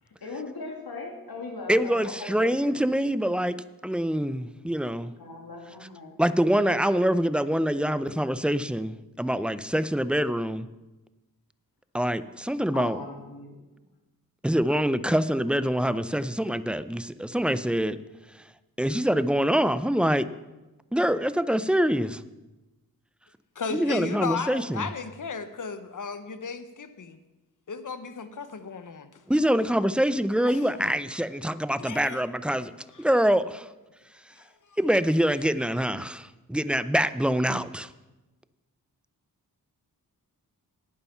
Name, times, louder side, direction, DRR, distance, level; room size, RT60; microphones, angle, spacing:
voice 1, 0.2-2.8 5.1-6.1 12.7-13.6, left 3 dB, 75° left, 1 dB, 2.4 m, -38 dB
voice 2, 1.7-3.5 3.8-5.1 6.2-10.7 11.9-13.0 14.4-18.0 18.8-20.3 20.9-22.2 23.7-24.9 29.3-32.7 33.0-33.7 34.8-37.9, equal, 5° right, 15 dB, 0.5 m, -25 dB
voice 3, 23.6-27.2 27.7-29.2 30.5-30.9 31.8-32.2 34.7-34.8, left 5 dB, 55° left, 11 dB, 1.0 m, -35 dB
11.5 x 8.9 x 5.7 m, 1.1 s
cardioid pair, 55°, 37 cm